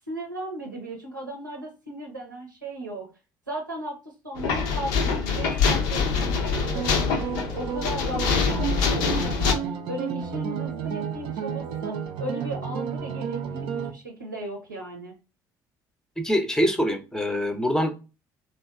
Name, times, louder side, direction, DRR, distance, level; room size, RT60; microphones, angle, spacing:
voice 1, 0.1-3.1 3.5-4.0 4.2-7.2 7.5-13.7 13.9-15.1, right 1 dB, 90° right, 0 dB, 0.7 m, -36 dB
sound 1, 4.4-9.5, left 5 dB, 65° left, 0.5 m, -25 dB
sound 2, 6.5-13.9, right 7 dB, 55° right, 0.4 m, -32 dB
voice 2, 16.2-18.0, equal, 5° left, 5 dB, 0.6 m, -24 dB
2.7 x 2.3 x 2.2 m, 0.29 s
figure-of-eight pair, 55°, 10 cm